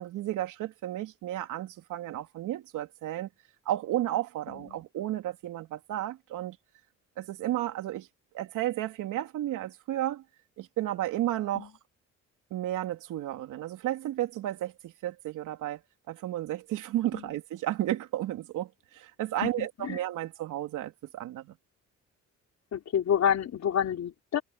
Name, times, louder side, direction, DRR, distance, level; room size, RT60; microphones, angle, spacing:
voice 1, 0.0-3.3 3.6-6.6 7.2-8.1 8.3-10.2 10.6-11.7 12.5-15.8 16.1-21.5, right 13 dB, 85° right, 3.4 m, -33 dB
voice 2, 4.5-4.8 11.5-11.7 17.1-17.3 19.4-20.0 22.7-24.4, left 9 dB, 60° left, 3.8 m, -29 dB
cardioid pair, 90°, 30 cm